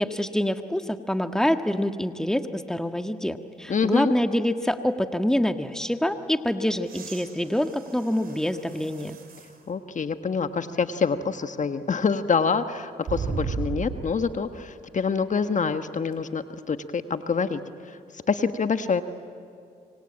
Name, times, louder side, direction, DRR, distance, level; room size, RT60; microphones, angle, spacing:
voice 1, 0.0-9.2, left 1 dB, 5° left, 7 dB, 1.6 m, -26 dB
voice 2, 3.7-4.1 9.7-17.6 17.9-18.0 18.3-19.0, left 5 dB, 50° left, 9 dB, 1.4 m, -26 dB
sound 1, 6.8-9.6 10.2-10.3 13.0-14.3 16.1-16.2, right 5 dB, 65° right, 4.0 m, -35 dB
25.5 x 25.5 x 8.9 m, 2.5 s
supercardioid pair, 55°, 17 cm